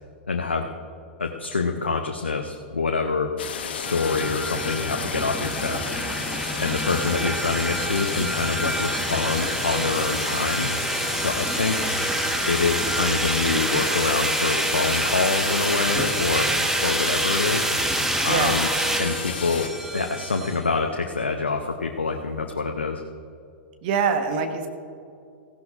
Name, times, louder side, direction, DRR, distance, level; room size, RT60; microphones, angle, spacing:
voice 1, 0.3-0.7 1.2-3.3 3.7-5.9 6.6-10.7 11.2-11.8 12.5-16.5 16.8-17.6 18.2-18.7 19.0-19.7 19.9-23.0, left 4 dB, 85° left, 3 dB, 0.8 m, -26 dB
sound 1, 3.4-19.7, left 7 dB, 70° left, 1.2 m, -33 dB
sound 2, 3.9-20.6, right 1 dB, 5° right, 1.1 m, -27 dB
voice 2, 18.2-18.6 23.8-24.7, right 6 dB, 50° right, 5 dB, 1.4 m, -24 dB
17.0 x 15.5 x 2.6 m, 2.4 s
figure-of-eight pair, 100°, 6 cm